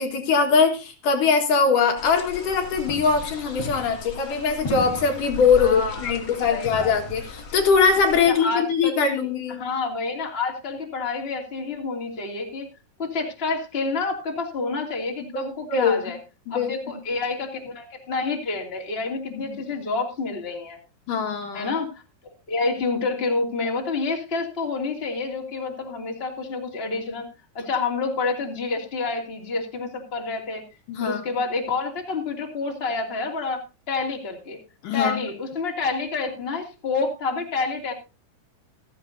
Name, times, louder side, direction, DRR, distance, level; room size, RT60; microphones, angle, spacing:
voice 1, 0.0-9.6 15.3-16.0 16.5-16.7 19.3-19.6 21.1-21.7 30.9-31.2 34.8-35.2, left 5 dB, 65° left, 4 dB, 3.1 m, -22 dB
sound 1, 2.0-8.3, left 3 dB, 35° left, 2.5 m, -35 dB
voice 2, 5.6-6.1 6.5-6.9 8.3-9.3 9.6-12.7 13.0-16.2 16.5-20.8 21.5-22.0 22.5-27.3 27.5-30.6 31.0-34.6 34.9-37.9, left 4 dB, 20° left, 2 dB, 2.4 m, -28 dB
16.0 x 14.0 x 2.6 m, 0.29 s
omnidirectional pair, 4.0 m